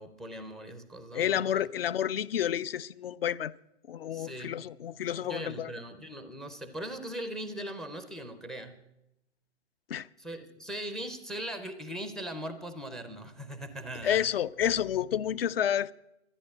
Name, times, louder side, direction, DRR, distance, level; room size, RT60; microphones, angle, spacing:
voice 1, 0.0-1.6 4.1-4.7 5.2-8.8 10.2-14.2, right 1 dB, ahead, 0.5 m, -40 dB
voice 2, 1.1-3.5 3.9-5.7 9.9-10.1 14.0-15.9, left 10 dB, 55° left, 0.6 m, -30 dB
13.0 x 10.0 x 8.5 m
hypercardioid pair, 130°, 34 cm